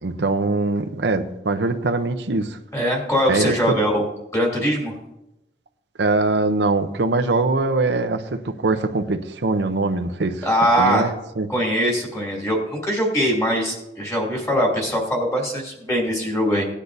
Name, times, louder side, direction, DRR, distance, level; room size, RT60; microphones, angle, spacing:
voice 1, 0.0-2.6 3.3-3.5 6.0-10.5 10.8-11.5, right 3 dB, 75° right, 7 dB, 0.7 m, -22 dB
voice 2, 2.7-4.1 4.3-4.9 10.4-11.1 11.5-16.7, equal, 15° left, -2 dB, 2.8 m, -21 dB
17.5 x 10.0 x 2.7 m, 0.89 s
head